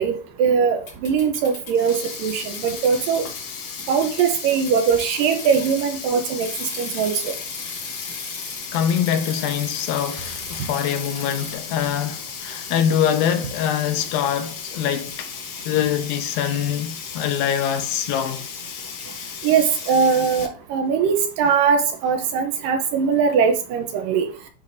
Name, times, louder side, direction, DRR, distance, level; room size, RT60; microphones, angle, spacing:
voice 1, 0.0-3.2 3.9-7.3 19.4-24.3, right 6 dB, 75° right, 2.2 m, -21 dB
sound 1, 0.9-1.7 2.0-3.4 3.8-6.0 6.4-11.5, left 4 dB, 40° left, 2.2 m, -37 dB
Sink (filling or washing), 1.6-20.5, left 6 dB, 65° left, 1.5 m, -35 dB
voice 2, 8.7-15.3 15.7-18.5 19.2-19.3 21.4-21.5, left 9 dB, 80° left, 2.4 m, -24 dB
11.5 x 4.8 x 2.7 m
omnidirectional pair, 4.4 m